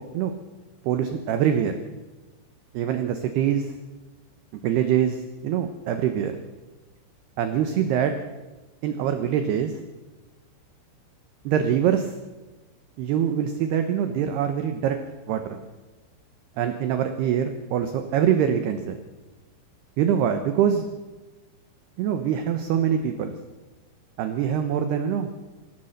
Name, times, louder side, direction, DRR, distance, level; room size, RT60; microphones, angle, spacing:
voice 1, 0.8-1.8 2.7-3.7 4.6-6.3 7.4-8.1 8.8-9.7 11.4-12.1 13.0-15.0 15.3-15.6 16.6-19.0 20.0-20.9 22.0-23.3 24.2-25.3, right 9 dB, 75° right, 7 dB, 2.5 m, -24 dB
25.5 x 17.0 x 6.6 m, 1.2 s
omnidirectional pair, 6.0 m